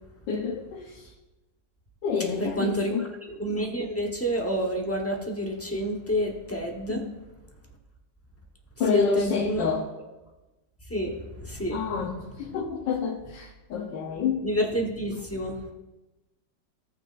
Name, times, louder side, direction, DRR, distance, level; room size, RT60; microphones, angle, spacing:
voice 1, 0.3-1.1 2.0-3.1 6.9-7.1 8.8-9.9 11.7-14.4, left 5 dB, 85° left, -1 dB, 1.5 m, -28 dB
voice 2, 2.4-7.0 8.9-9.7 10.9-11.8 14.4-15.7, equal, 10° left, 0 dB, 0.6 m, -29 dB
16.5 x 6.1 x 2.5 m, 1.1 s
omnidirectional pair, 1.9 m